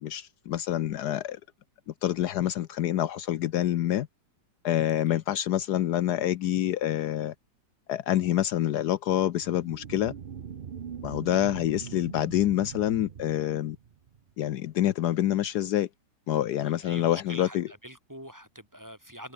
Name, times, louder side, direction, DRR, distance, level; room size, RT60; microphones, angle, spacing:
voice 1, 0.0-1.4 2.0-4.1 4.6-7.3 7.9-10.1 11.0-13.8 14.4-15.9 16.3-17.7, left 12 dB, 70° left, 1.2 m, -27 dB
sound 1, 9.3-14.3, right 7 dB, 45° right, 0.7 m, -42 dB
voice 2, 16.6-19.3, equal, 10° right, 2.2 m, -45 dB
omnidirectional pair, 1.9 m